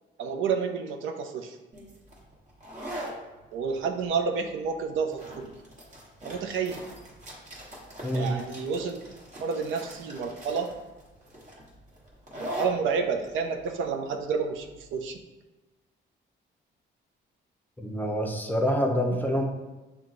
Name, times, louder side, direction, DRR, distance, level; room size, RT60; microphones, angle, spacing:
voice 1, 0.2-1.6 3.5-5.5 6.2-6.8 8.1-9.0 9.4-10.7 12.4-15.2, right 5 dB, 80° right, 5 dB, 0.5 m, -30 dB
sound 1, 1.7-15.1, equal, 35° right, 1.4 m, -42 dB
voice 2, 8.0-8.3 17.8-19.5, equal, 10° left, 2 dB, 0.7 m, -26 dB
6.0 x 2.3 x 3.7 m, 1.1 s
cardioid pair, 90°, 20 cm